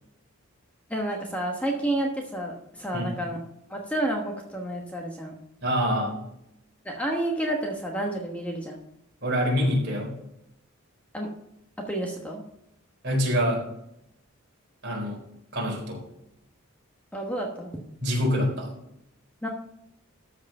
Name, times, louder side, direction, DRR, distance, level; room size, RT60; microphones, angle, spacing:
voice 1, 0.9-3.4 3.7-5.4 6.8-8.8 11.1-11.3 11.8-12.4 17.1-17.7 19.4-19.5, right 1 dB, 5° left, 0 dB, 1.2 m, -30 dB
voice 2, 5.6-6.2 9.2-10.1 13.0-13.6 14.8-15.2 15.5-16.0 18.0-18.7, equal, 50° right, -1 dB, 4.1 m, -25 dB
13.5 x 4.8 x 6.5 m, 0.78 s
head